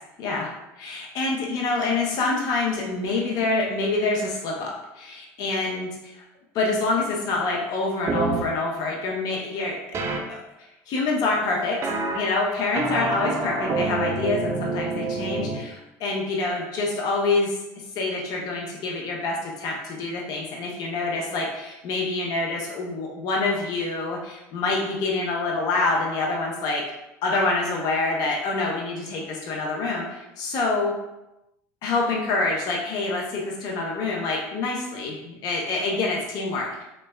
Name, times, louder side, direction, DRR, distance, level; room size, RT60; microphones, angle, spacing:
voice 1, 0.2-0.5 0.8-6.2 6.5-9.8 10.3-10.4 10.9-17.5 18.0-26.8 27.2-30.9 31.8-36.8, left 3 dB, 55° left, -2 dB, 0.7 m, -26 dB
sound 1, 8.1-8.4 9.9-10.2 11.8-12.2 12.8-15.6, right 3 dB, 35° right, 0.5 m, -27 dB
3.2 x 3.1 x 2.3 m, 0.92 s
supercardioid pair, 90°, 8 cm